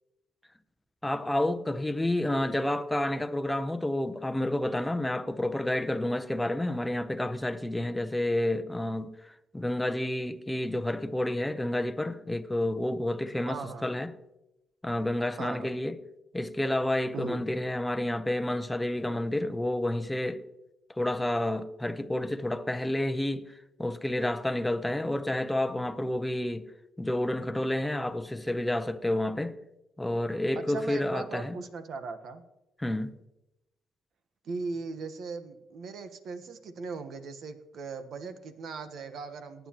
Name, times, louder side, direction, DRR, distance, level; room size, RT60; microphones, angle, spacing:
voice 1, 1.0-9.2 9.5-14.2 14.8-16.0 16.3-20.4 21.0-23.5 23.8-26.7 27.0-29.6 30.0-31.6 32.8-33.2, left 1 dB, 10° left, 0.8 m, -30 dB
voice 2, 13.5-13.9 15.4-15.7 17.1-17.4 30.6-32.4 34.4-39.7, right 4 dB, 65° right, 1.2 m, -38 dB
19.0 x 9.4 x 3.0 m
cardioid pair, 90°, 0 cm